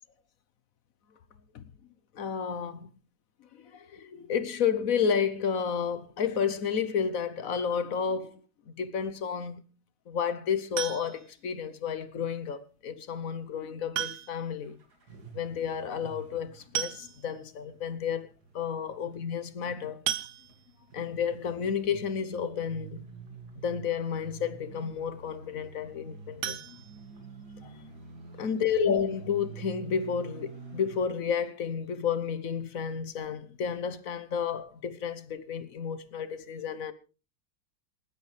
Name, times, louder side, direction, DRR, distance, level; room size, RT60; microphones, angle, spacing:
voice 1, 2.1-2.9 3.5-8.4 8.8-9.6 10.1-14.8 15.3-18.3 18.5-20.0 20.9-23.0 23.6-26.8 27.6-27.7 28.4-36.9, left 7 dB, 55° left, 1.1 m, -31 dB
sound 1, 10.8-11.4 12.9-13.0 13.9-14.6 14.9-15.0 15.3-15.4 16.4-16.5 16.8-17.5 18.0-18.1 18.5-18.6 20.1-20.9 26.4-27.6 28.0-28.1 28.5-28.6 29.0-29.1, right 10 dB, 65° right, 1.4 m, -35 dB
sound 2, 14.6-31.1, right 5 dB, 50° right, 2.7 m, -49 dB
27.0 x 9.6 x 3.3 m
omnidirectional pair, 2.2 m